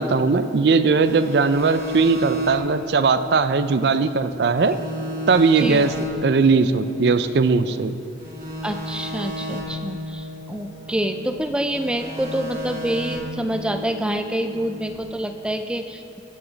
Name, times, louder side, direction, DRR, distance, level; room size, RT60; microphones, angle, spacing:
voice 1, 0.0-4.8 5.3-5.9 6.2-7.9, right 4 dB, 70° right, 11 dB, 0.4 m, -19 dB
sound 1, 1.0-4.3 4.6-7.8 8.2-11.4 11.7-14.9, equal, 50° right, 2.3 m, -33 dB
voice 2, 5.6-5.9 8.6-16.2, right 1 dB, 5° right, 7 dB, 0.3 m, -27 dB
16.0 x 7.0 x 4.0 m, 2.9 s
head